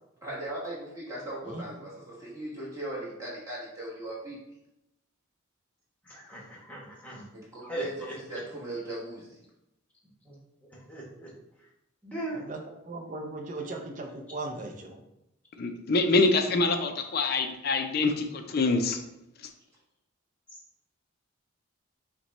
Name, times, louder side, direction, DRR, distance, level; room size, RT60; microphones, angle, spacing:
voice 1, 0.2-4.4 7.3-9.4, right 1 dB, 15° right, -6 dB, 1.3 m, -38 dB
voice 2, 1.5-1.9 12.3-15.0, right 2 dB, 35° right, 3 dB, 0.5 m, -38 dB
voice 3, 6.1-7.3 7.6-8.1 10.3-10.4 10.9-11.3 12.0-12.4, right 1 dB, 5° left, -3 dB, 1.0 m, -38 dB
voice 4, 15.6-19.0, left 3 dB, 45° left, 6 dB, 0.4 m, -25 dB
5.8 x 2.2 x 4.0 m, 0.88 s
head